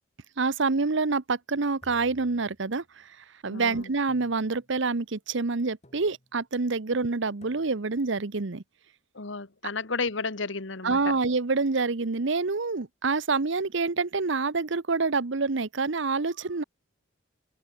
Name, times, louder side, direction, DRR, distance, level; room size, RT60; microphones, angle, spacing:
voice 1, 0.4-8.6 10.8-16.6, right 4 dB, 65° right, 0.9 m, -27 dB
sound 1, 1.8-3.0 4.1-4.9 5.8-6.4 7.4-8.1, equal, 35° left, 5.9 m, -57 dB
voice 2, 3.5-3.9 9.1-11.1, left 4 dB, 65° left, 1.5 m, -32 dB
open air
head